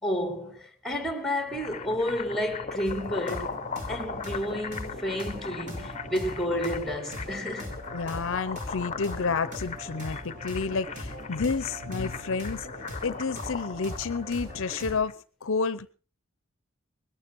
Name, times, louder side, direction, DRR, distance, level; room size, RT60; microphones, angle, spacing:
voice 1, 0.0-3.6 3.9-7.7, left 1 dB, ahead, 2.2 m, -31 dB
sound 1, 1.3-15.1, left 5 dB, 35° left, 0.9 m, -39 dB
sound 2, 2.8-14.9, equal, 40° right, 5.2 m, -41 dB
voice 2, 7.9-12.7 13.0-15.9, left 4 dB, 65° left, 0.7 m, -30 dB
20.5 x 12.0 x 4.6 m
head